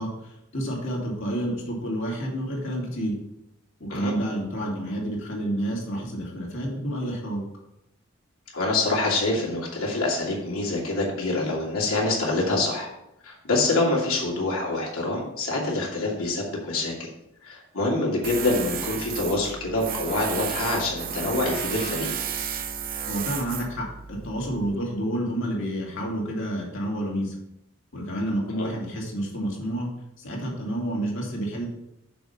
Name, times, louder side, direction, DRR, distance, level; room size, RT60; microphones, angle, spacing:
voice 1, 0.0-3.1 3.8-7.4 23.1-27.4 27.9-29.9 30.2-31.7, right 1 dB, 65° left, -3 dB, 2.6 m, -29 dB
voice 2, 8.5-12.9 13.2-16.9 17.4-22.1 28.5-28.7, left 2 dB, 90° left, -3 dB, 2.6 m, -26 dB
Tools, 18.2-24.8, right 8 dB, 45° right, 0.6 m, -33 dB
6.8 x 5.4 x 5.7 m, 0.84 s
head